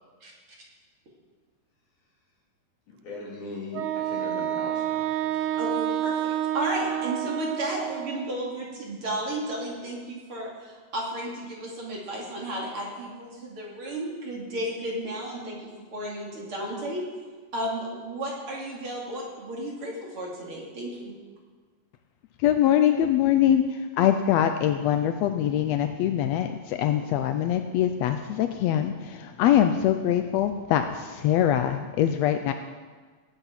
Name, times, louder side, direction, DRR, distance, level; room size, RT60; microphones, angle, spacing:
voice 1, 2.9-5.6, left 2 dB, 70° left, -3 dB, 4.3 m, -39 dB
Wind instrument woodwind instrument, 3.7-8.4, right 12 dB, 75° right, 2.0 m, -29 dB
voice 2, 5.6-17.0 17.5-21.1, right 1 dB, 45° right, -3 dB, 3.2 m, -33 dB
voice 3, 22.4-32.5, left 10 dB, 85° left, 8 dB, 1.5 m, -23 dB
19.5 x 8.2 x 5.8 m, 1.5 s
omnidirectional pair, 3.7 m